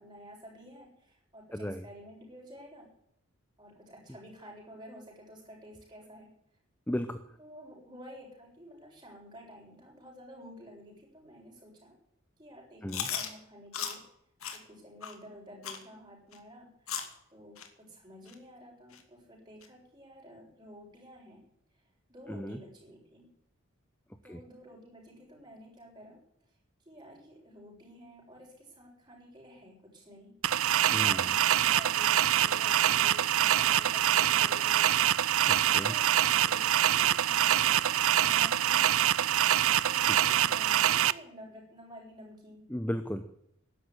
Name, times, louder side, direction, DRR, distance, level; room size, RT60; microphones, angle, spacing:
voice 1, 0.0-2.9 3.6-6.3 7.4-11.9 12.4-14.0 14.5-17.0 17.3-21.4 22.1-23.3 24.2-26.2 26.8-35.2 35.8-39.4 39.7-42.7, equal, 20° right, -2 dB, 7.2 m, -51 dB
voice 2, 1.5-1.8 6.9-7.3 12.8-13.1 22.3-22.6 24.3-24.4 30.9-31.3 35.5-35.9 42.7-43.4, equal, 10° left, 10 dB, 0.8 m, -35 dB
Chewing mastication, 12.9-13.3 13.7-14.0 14.4-14.6 15.0-15.1 15.6-15.8 16.3-16.4 16.9-17.1 17.6-17.7 18.3-18.4 18.9-19.0 19.6-19.7, left 8 dB, 90° left, 2.6 m, -36 dB
sound 1, 30.4-41.1, right 11 dB, 80° right, 0.6 m, -25 dB
13.0 x 11.5 x 9.8 m, 0.76 s
head